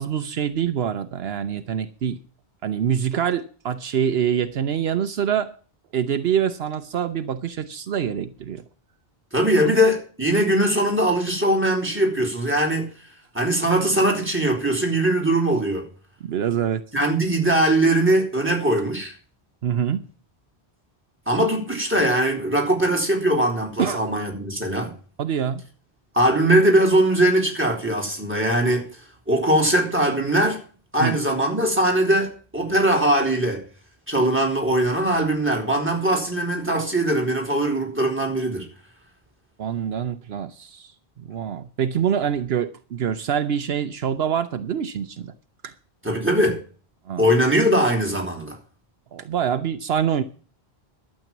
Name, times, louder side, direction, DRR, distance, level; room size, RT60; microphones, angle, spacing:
voice 1, 0.0-2.2 2.6-5.5 5.9-8.6 16.2-16.8 19.6-20.0 23.8-24.0 25.2-25.6 31.0-31.2 39.6-40.9 41.2-45.3 45.6-45.7 47.1-47.3 49.1-50.2, right 8 dB, 75° right, 1.0 m, -25 dB
voice 2, 9.3-12.9 13.3-15.9 16.9-19.1 21.3-24.9 26.1-28.9 29.3-30.6 30.9-33.6 34.1-38.7 46.0-46.6 47.2-48.6, right 1 dB, 10° right, 3.7 m, -21 dB
12.0 x 7.7 x 7.2 m
omnidirectional pair, 1.0 m